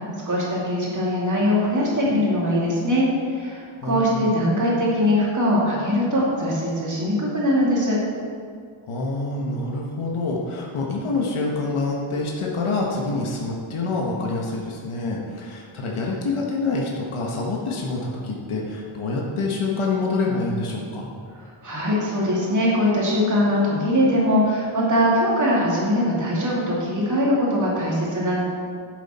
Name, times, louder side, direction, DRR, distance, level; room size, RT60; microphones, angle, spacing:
voice 1, 0.3-8.0 21.6-28.4, left 1 dB, 40° right, -5 dB, 2.5 m, -21 dB
voice 2, 3.8-4.2 8.9-21.1, left 3 dB, 90° left, -2 dB, 1.5 m, -26 dB
10.5 x 8.2 x 4.3 m, 2.2 s
wide cardioid pair, 175°, 48 cm